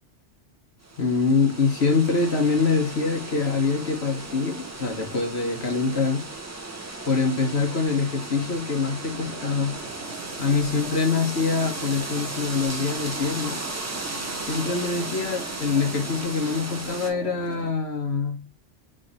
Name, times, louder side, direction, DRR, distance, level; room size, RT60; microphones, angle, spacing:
sound 1, 0.8-17.1, right 2 dB, 25° right, 0.4 m, -35 dB
voice 1, 1.0-6.3 7.1-9.8 10.4-13.7 14.5-18.4, left 4 dB, 65° left, 1.2 m, -24 dB
sound 2, 9.0-17.7, right 4 dB, 80° right, 1.0 m, -41 dB
3.2 x 3.1 x 3.9 m
omnidirectional pair, 1.2 m